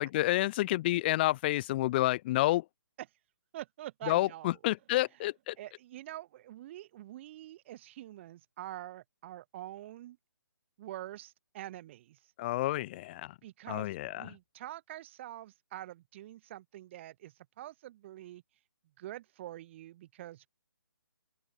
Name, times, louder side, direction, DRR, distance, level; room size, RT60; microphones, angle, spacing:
voice 1, 0.0-2.6 4.0-5.5 12.4-13.3 13.7-14.3, left 16 dB, 25° left, 0.6 m, -29 dB
voice 2, 3.5-4.6 5.6-10.2 10.8-12.3 13.4-18.4 19.0-20.5, right 14 dB, 30° right, 1.2 m, -46 dB
hypercardioid pair, 150°, 12 cm